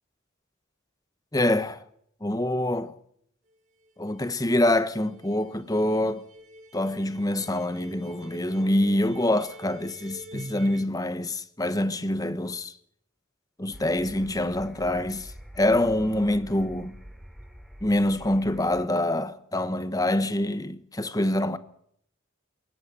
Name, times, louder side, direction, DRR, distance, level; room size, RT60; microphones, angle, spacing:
voice 1, 1.3-1.8 2.2-2.9 4.0-6.2 6.7-12.7 13.6-17.0 17.8-21.6, left 1 dB, 20° left, 1.1 m, -25 dB
sound 1, 3.5-3.6 3.8-3.9 4.2-10.8, equal, 35° right, 3.0 m, -45 dB
sound 2, 13.7-18.9, equal, ahead, 3.3 m, -46 dB
21.0 x 17.5 x 8.9 m
head